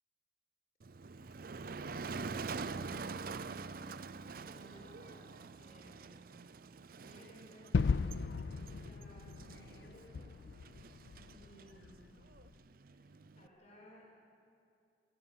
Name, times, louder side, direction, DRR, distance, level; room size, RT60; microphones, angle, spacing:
Motor vehicle (road), 0.8-13.5, right 4 dB, 50° right, 0.5 m, -46 dB
voice 1, 1.9-2.4 4.5-5.2 5.6-6.3 7.0-8.3 8.7-10.6 11.2-12.0 13.4-14.0, equal, 40° left, -3 dB, 5.0 m, -59 dB
Gunshot gunfire / Fireworks / Boom, 7.7-12.5, left 4 dB, 65° left, 0.4 m, -37 dB
23.5 x 14.5 x 8.0 m, 2.5 s
head